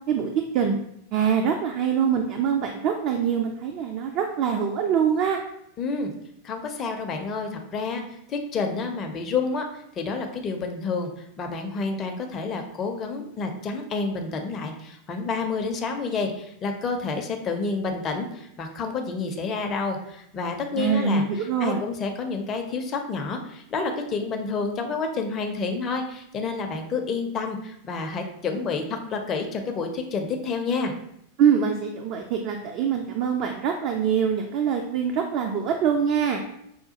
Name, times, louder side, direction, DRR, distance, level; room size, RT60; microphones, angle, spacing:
voice 1, 0.1-0.8 1.1-5.4 20.7-21.8 31.4-36.4, right 7 dB, 40° right, 3 dB, 0.3 m, -24 dB
voice 2, 5.8-6.1 6.4-8.0 8.3-9.7 10.0-21.2 21.6-30.9, left 4 dB, 30° left, 4 dB, 0.4 m, -29 dB
4.9 x 2.2 x 2.7 m, 0.76 s
figure-of-eight pair, 90°, 0 cm